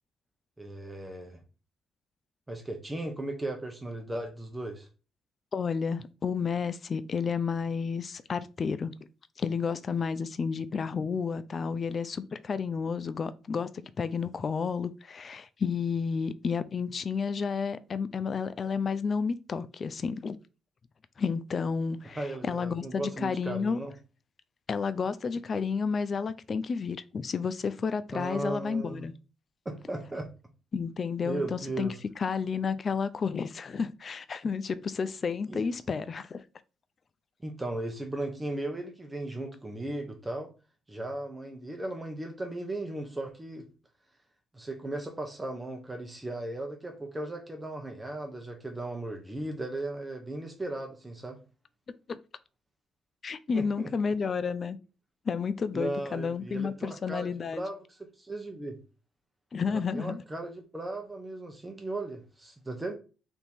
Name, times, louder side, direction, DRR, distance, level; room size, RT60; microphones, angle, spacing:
voice 1, 0.6-1.4 2.5-4.9 22.1-23.9 28.1-29.1 29.6-30.3 31.2-32.0 35.5-35.6 37.4-40.5 40.9-43.7 44.5-51.4 53.5-53.9 55.7-58.8 59.7-62.9, right 2 dB, 15° right, 0.9 m, -36 dB
voice 2, 5.5-8.9 9.4-20.4 21.2-23.8 24.7-29.1 30.7-31.9 32.2-36.4 52.1-52.2 53.2-54.8 55.3-57.6 59.5-60.2, left 5 dB, 45° left, 0.4 m, -31 dB
3.5 x 2.8 x 4.2 m
cardioid pair, 90°, 0 cm